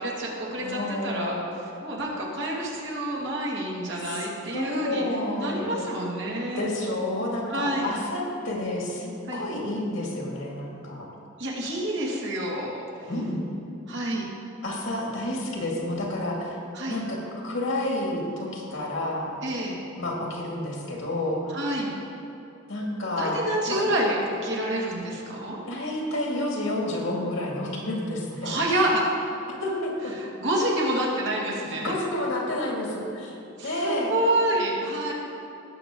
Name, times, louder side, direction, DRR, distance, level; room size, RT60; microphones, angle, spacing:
voice 1, 0.0-1.4 1.8-5.0 5.3-6.7 7.4-7.9 9.3-9.5 11.4-13.1 13.9-14.3 16.7-17.0 19.4-19.8 21.5-21.9 23.2-25.6 28.4-29.1 30.2-31.9 33.6-35.1, right 1 dB, 60° right, -3 dB, 2.2 m, -28 dB
voice 2, 0.6-1.5 4.0-4.3 4.5-5.9 6.6-11.1 13.1-13.4 14.6-16.6 16.9-19.4 20.0-21.5 22.7-23.8 25.7-28.5 29.6-30.1 31.8-33.3 33.6-34.1, left 1 dB, 65° left, -2 dB, 2.3 m, -30 dB
18.0 x 7.0 x 3.8 m, 2.8 s
head